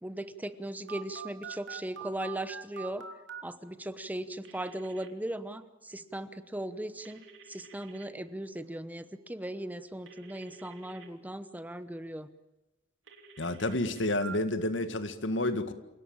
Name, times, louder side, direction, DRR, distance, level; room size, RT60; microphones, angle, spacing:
voice 1, 0.0-3.1 3.4-12.3, right 1 dB, 10° right, 1.0 m, -38 dB
Telephone, 0.9-3.4 4.4-5.1 7.0-8.1 10.1-11.1 13.1-14.3, right 7 dB, 75° right, 3.1 m, -46 dB
voice 2, 13.4-15.7, left 1 dB, 70° left, 1.9 m, -30 dB
28.0 x 18.0 x 8.8 m
head